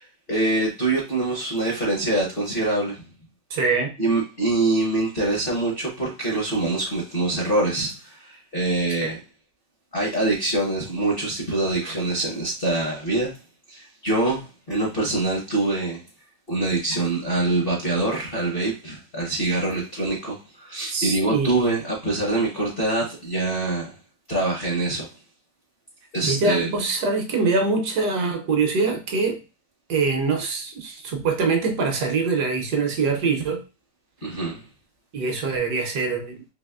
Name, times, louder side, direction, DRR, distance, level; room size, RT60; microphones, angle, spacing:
voice 1, 0.0-3.0 4.0-9.2 9.9-13.3 13.7-16.0 16.5-23.9 24.3-25.1 26.1-26.7 34.2-34.6, right 2 dB, 45° left, 0.7 m, -24 dB
voice 2, 3.5-3.9 9.0-9.1 11.8-11.9 20.9-21.6 26.3-29.4 29.9-33.6 35.1-36.5, right 4 dB, 70° right, 1.1 m, -24 dB
4.0 x 2.9 x 2.3 m
omnidirectional pair, 2.0 m